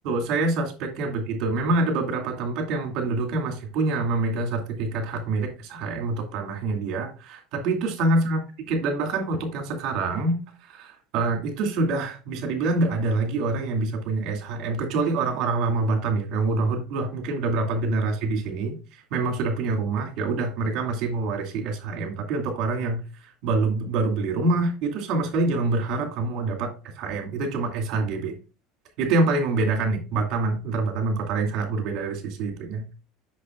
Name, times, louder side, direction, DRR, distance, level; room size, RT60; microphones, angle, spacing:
voice 1, 0.0-8.4 8.7-10.4 10.7-23.0 23.4-28.3 29.0-32.9, right 3 dB, 60° right, 3 dB, 2.5 m, -26 dB
8.0 x 6.5 x 2.5 m, 0.34 s
supercardioid pair, 130°, 0 cm